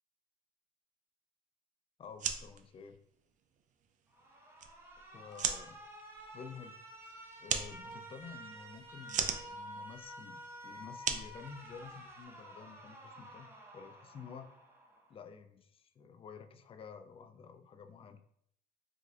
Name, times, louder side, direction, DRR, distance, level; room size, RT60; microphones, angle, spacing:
voice 1, 2.0-3.0 5.0-5.8 6.3-6.8 7.4-13.5 13.7-14.5 15.1-18.2, left 6 dB, 35° left, 9 dB, 0.4 m, -51 dB
sound 1, 2.0-12.2, right 7 dB, 50° right, 0.4 m, -40 dB
Alarm, 4.1-15.1, right 1 dB, 15° right, 0.7 m, -51 dB
4.7 x 2.6 x 2.3 m, 0.69 s
cardioid pair, 110°, 17 cm